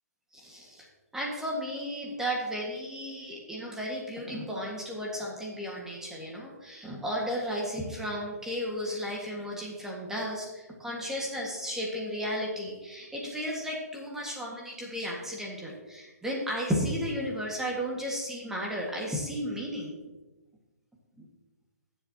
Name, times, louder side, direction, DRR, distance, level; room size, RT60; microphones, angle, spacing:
voice 1, 0.3-0.9 1.1-20.0 21.2-21.3, equal, 5° right, -2 dB, 1.7 m, -34 dB
18.0 x 7.6 x 2.9 m, 1.2 s
hypercardioid pair, 145°, 9 cm